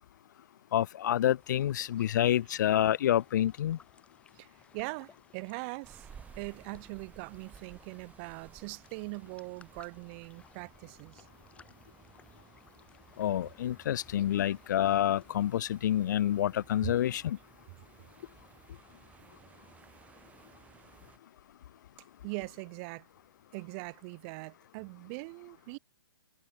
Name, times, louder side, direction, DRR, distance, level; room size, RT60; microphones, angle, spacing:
voice 1, 0.7-3.8 13.2-17.4, left 11 dB, 50° left, 0.4 m, -28 dB
sound 1, 1.4-15.6, left 6 dB, 10° left, 2.2 m, -62 dB
voice 2, 4.3-6.1 6.4-11.2 16.8-16.9 22.2-23.1 23.5-25.8, right 33 dB, 30° right, 1.6 m, -41 dB
sound 2, 5.8-21.2, right 7 dB, 10° right, 1.3 m, -57 dB
hypercardioid pair, 140°, 13 cm